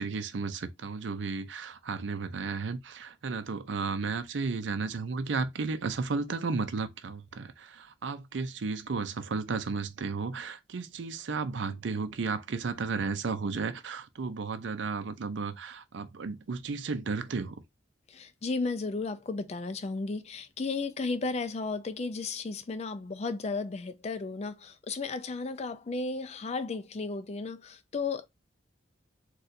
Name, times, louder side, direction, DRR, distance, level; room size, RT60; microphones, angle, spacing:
voice 1, 0.0-17.6, right 4 dB, 70° right, 0.5 m, -33 dB
voice 2, 18.1-28.3, left 3 dB, 35° left, 0.4 m, -34 dB
4.0 x 2.3 x 2.6 m
head